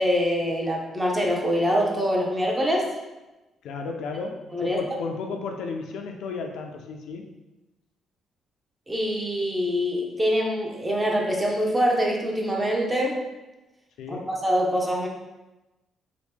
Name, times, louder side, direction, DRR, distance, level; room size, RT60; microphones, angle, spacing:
voice 1, 0.0-2.9 4.5-4.8 8.9-13.2 14.1-15.1, equal, 15° right, -1 dB, 0.6 m, -24 dB
voice 2, 3.6-7.3 14.0-14.3, left 4 dB, 80° left, 3 dB, 0.3 m, -33 dB
2.9 x 2.1 x 3.3 m, 1.1 s
cardioid pair, 90°, 0 cm